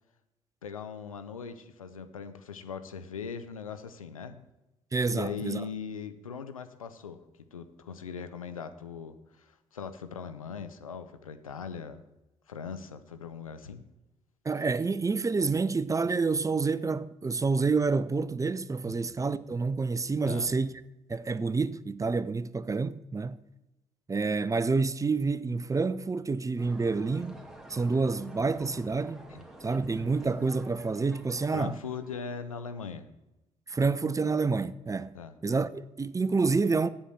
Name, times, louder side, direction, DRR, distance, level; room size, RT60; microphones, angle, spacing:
voice 1, 0.6-4.4 5.1-7.2 7.5-12.0 12.5-13.8 18.9-19.0 20.2-20.5 29.3-29.4 31.5-33.1 35.1-35.3, left 6 dB, 85° left, 0.6 m, -40 dB
voice 2, 4.9-5.6 14.4-20.7 21.1-23.4 24.1-27.4 27.7-29.2 29.6-31.8 33.7-35.1 35.4-36.9, right 4 dB, 20° right, 0.5 m, -28 dB
sound 1, 26.6-32.5, right 1 dB, ahead, 2.1 m, -49 dB
8.2 x 7.8 x 7.7 m
figure-of-eight pair, 45°, 17 cm